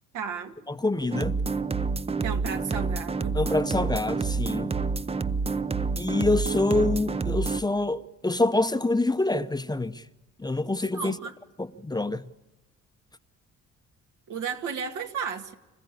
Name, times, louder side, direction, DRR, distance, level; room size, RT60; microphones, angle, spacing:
voice 1, 0.1-0.5 2.2-3.4 10.9-11.3 14.3-15.5, right 6 dB, 75° right, 2.1 m, -33 dB
voice 2, 0.7-1.4 3.3-4.7 6.0-10.1 10.4-11.2 11.6-12.3, left 2 dB, 15° left, 0.8 m, -26 dB
sound 1, 1.1-7.6, right 4 dB, 20° right, 0.6 m, -28 dB
26.0 x 15.0 x 8.4 m
cardioid pair, 90°, 30 cm